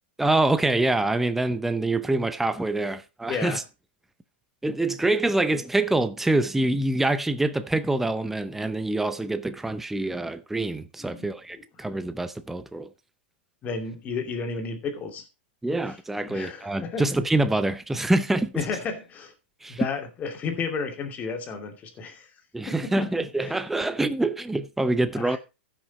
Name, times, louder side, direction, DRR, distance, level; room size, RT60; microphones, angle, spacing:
voice 1, 0.2-3.6 4.6-12.9 15.6-18.5 19.6-19.8 22.5-25.4, right 2 dB, 5° right, 0.6 m, -25 dB
voice 2, 3.3-3.6 11.0-11.3 11.8-11.9 13.6-15.2 16.3-17.0 18.5-19.3 19.7-22.3 22.7-23.6 25.1-25.4, left 5 dB, 25° left, 2.6 m, -32 dB
14.5 x 6.3 x 4.1 m
hypercardioid pair, 140°, 6 cm